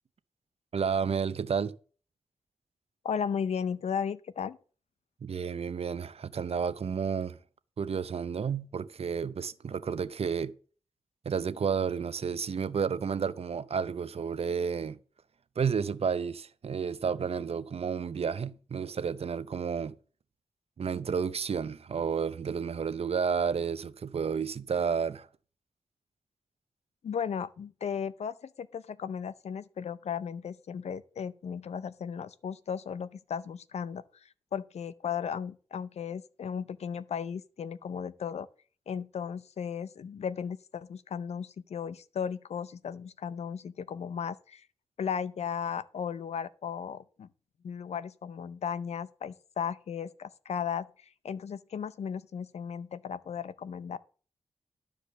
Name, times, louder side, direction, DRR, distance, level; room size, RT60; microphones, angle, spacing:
voice 1, 0.7-1.7 5.2-7.4 7.8-10.5 11.2-15.0 15.6-19.9 20.8-25.3, right 6 dB, 70° right, 0.7 m, -31 dB
voice 2, 3.0-4.6 27.0-38.5 38.9-44.7 45.0-47.3 47.6-54.0, left 7 dB, 90° left, 0.5 m, -35 dB
12.0 x 5.0 x 6.7 m
cardioid pair, 60°, 11 cm